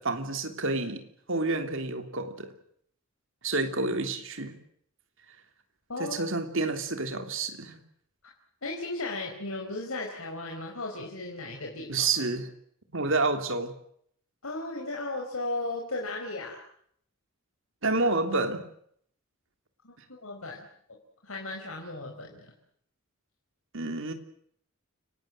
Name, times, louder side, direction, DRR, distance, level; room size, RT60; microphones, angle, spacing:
voice 1, 0.0-2.5 3.4-4.6 6.0-7.8 11.9-12.5 12.9-13.7 17.8-18.6 23.7-24.1, right 3 dB, 65° right, 3.3 m, -29 dB
voice 2, 8.6-12.1 14.4-16.6 19.8-20.7 21.2-22.5, left 2 dB, 80° left, 4.7 m, -36 dB
29.5 x 18.5 x 7.9 m
head